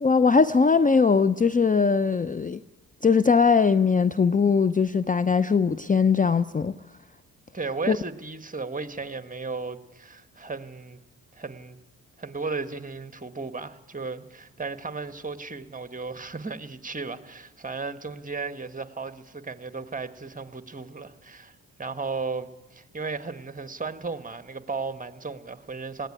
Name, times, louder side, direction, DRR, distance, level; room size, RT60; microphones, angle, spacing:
voice 1, 0.0-2.6 3.0-6.8 7.9-8.0, left 5 dB, 20° left, 15 dB, 0.6 m, -20 dB
voice 2, 7.5-11.0 11.3-11.8 12.2-26.1, right 4 dB, 20° right, 11 dB, 1.4 m, -35 dB
19.0 x 15.5 x 9.9 m, 1.1 s
supercardioid pair, 50°, 39 cm